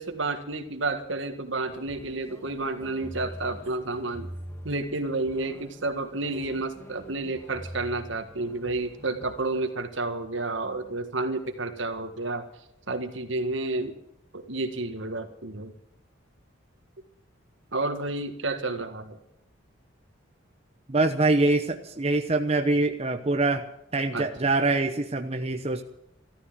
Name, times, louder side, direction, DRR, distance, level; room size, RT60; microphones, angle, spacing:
voice 1, 0.0-4.3 4.6-12.4 12.9-14.0 14.3-15.7 17.7-19.2 24.1-24.3, right 2 dB, 65° right, 7 dB, 1.8 m, -30 dB
sound 1, 1.7-9.7, equal, 15° left, 2.3 m, -44 dB
voice 2, 20.9-23.6 23.9-25.8, right 2 dB, 30° right, 5 dB, 0.9 m, -24 dB
14.0 x 13.5 x 7.5 m, 0.78 s
head